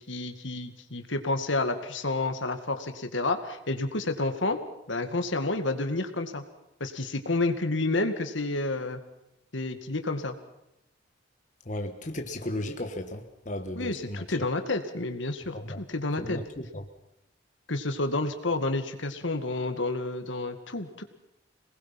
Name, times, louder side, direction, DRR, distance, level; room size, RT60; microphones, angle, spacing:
voice 1, 0.0-4.6 4.9-6.4 6.8-9.0 9.5-10.4 13.7-16.4 17.7-21.0, left 2 dB, 80° left, 7 dB, 2.1 m, -30 dB
voice 2, 11.7-14.2 15.5-15.8 16.2-16.8, left 1 dB, 40° left, 5 dB, 1.5 m, -35 dB
27.0 x 20.0 x 5.9 m, 0.84 s
head